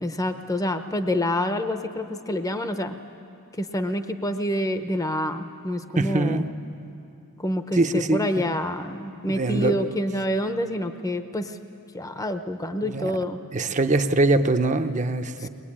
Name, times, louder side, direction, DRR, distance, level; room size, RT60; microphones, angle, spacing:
voice 1, 0.0-2.9 3.6-6.4 7.4-11.5 11.9-13.4 15.4-15.5, left 1 dB, 15° left, 8 dB, 0.8 m, -27 dB
voice 2, 6.0-6.5 7.7-8.5 9.3-9.9 12.8-13.1 13.5-15.5, right 2 dB, 35° right, 7 dB, 0.7 m, -23 dB
22.0 x 21.0 x 8.7 m, 2.7 s
head